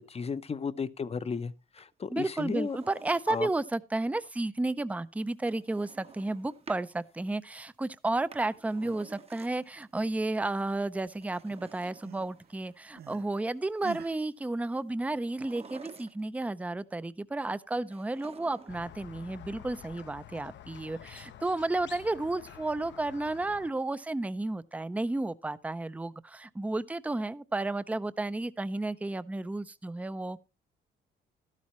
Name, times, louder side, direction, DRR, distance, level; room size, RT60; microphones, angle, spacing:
voice 1, 0.1-2.8 3.3-3.5, left 5 dB, 30° left, 0.7 m, -34 dB
voice 2, 2.1-30.4, right 2 dB, 5° right, 0.5 m, -32 dB
Drawer open or close, 2.2-3.7 5.4-6.9 8.1-9.8 11.1-12.8 15.2-16.4 17.9-19.0 19.2-19.3, right 5 dB, 30° right, 0.8 m, -51 dB
sound 1, 8.6-9.1 9.5-10.9 11.2-13.3 13.8-14.2, right 9 dB, 50° right, 0.5 m, -48 dB
Squeak, 18.7-23.7, left 10 dB, 65° left, 0.8 m, -49 dB
12.5 x 11.5 x 3.1 m
cardioid pair, 90°, 20 cm